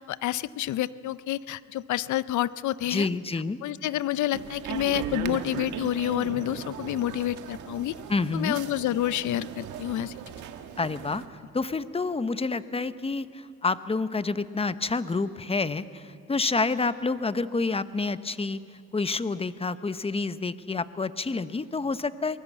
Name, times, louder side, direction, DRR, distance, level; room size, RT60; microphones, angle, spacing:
voice 1, 0.0-3.1 3.6-7.9 8.3-10.1, left 13 dB, 75° left, 17 dB, 0.7 m, -29 dB
voice 2, 2.9-3.6 8.1-8.6 10.8-11.2 11.5-22.4, left 3 dB, 20° left, 13 dB, 0.8 m, -28 dB
sound 1, 4.3-11.3, right 8 dB, 80° right, 1.5 m, -37 dB
23.0 x 20.0 x 8.3 m, 2.4 s
cardioid pair, 90°, 30 cm